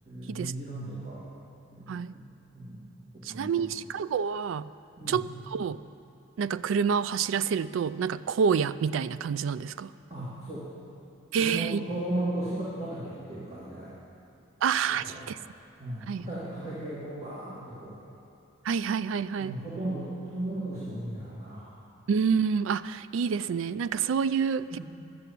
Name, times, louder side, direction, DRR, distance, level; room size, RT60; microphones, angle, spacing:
voice 1, 0.1-1.2 1.7-2.2 2.5-2.9 3.1-3.7 5.0-5.2 10.1-10.7 11.3-13.9 14.9-15.3 15.8-18.0 19.4-21.7 24.7-24.8, right 1 dB, 30° right, -9 dB, 2.1 m, -36 dB
voice 2, 3.2-4.7 5.1-5.8 6.4-9.9 11.3-11.8 14.6-15.4 16.1-16.3 18.6-19.5 22.1-24.8, right 6 dB, 80° right, 15 dB, 0.3 m, -28 dB
12.5 x 6.9 x 8.4 m, 2.6 s
head